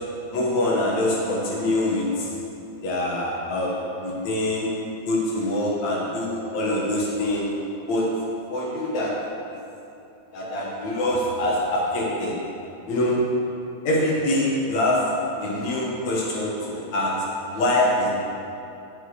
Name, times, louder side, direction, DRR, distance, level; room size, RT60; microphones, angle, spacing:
voice 1, 0.3-2.3 2.8-4.7 5.1-7.4 7.9-8.1 8.5-9.1 9.5-9.6 10.3-12.4 12.9-13.2 13.8-15.1 15.4-17.1 17.5-18.1, left 1 dB, 65° left, -4 dB, 2.4 m, -24 dB
9.9 x 6.5 x 4.8 m, 2.7 s
omnidirectional pair, 3.7 m